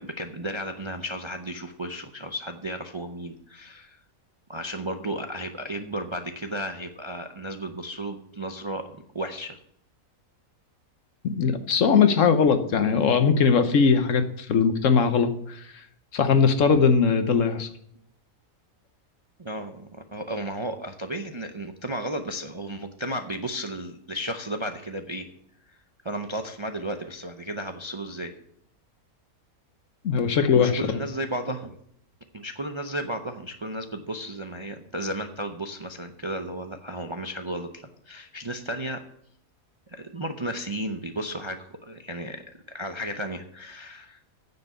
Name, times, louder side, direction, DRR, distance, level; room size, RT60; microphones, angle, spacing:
voice 1, 0.0-4.0 4.5-8.9 9.1-9.6 19.4-25.3 25.7-25.8 26.0-28.3 30.3-31.8 32.3-39.0 39.9-44.2, right 1 dB, 30° right, 5 dB, 0.5 m, -34 dB
voice 2, 11.2-15.3 16.1-17.7 30.0-31.0, left 6 dB, 65° left, 9 dB, 1.2 m, -20 dB
9.6 x 7.4 x 6.7 m, 0.68 s
omnidirectional pair, 1.5 m